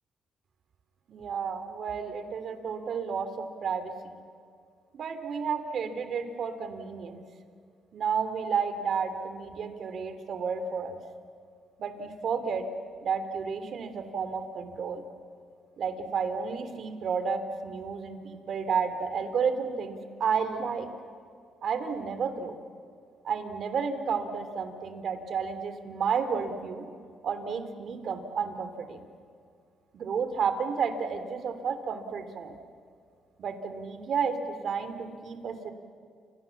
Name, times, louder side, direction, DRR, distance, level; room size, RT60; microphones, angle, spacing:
voice 1, 1.1-4.2 4.9-7.2 7.9-11.0 11.8-12.7 13.0-15.0 15.8-20.9 21.6-22.5 23.2-26.8 27.2-29.0 29.9-32.6 33.4-35.7, right 6 dB, 60° right, 9 dB, 3.1 m, -31 dB
30.0 x 27.5 x 7.3 m, 2.2 s
cardioid pair, 90°, 0 cm